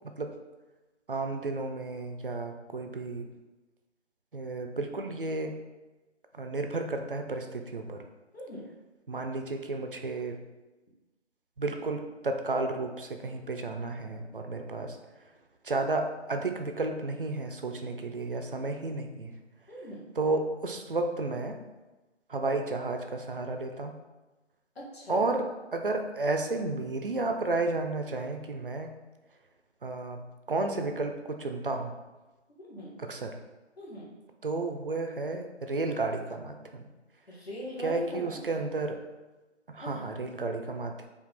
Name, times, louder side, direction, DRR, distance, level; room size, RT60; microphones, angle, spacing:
voice 1, 1.1-3.3 4.3-5.6 6.3-8.0 9.1-10.4 11.6-15.0 15.6-19.4 20.2-21.6 22.3-24.0 25.1-28.9 29.8-30.2 30.5-31.9 33.0-33.4 34.4-36.9 37.8-39.0 39.7-41.1, right 3 dB, 50° right, 5 dB, 0.5 m, -32 dB
voice 2, 8.3-8.7 19.7-20.1 24.7-25.2 32.6-33.0 33.8-34.1 37.3-38.6 39.8-40.1, equal, 60° left, -4 dB, 1.4 m, -41 dB
5.0 x 2.4 x 3.4 m, 1.1 s
figure-of-eight pair, 165°, 35 cm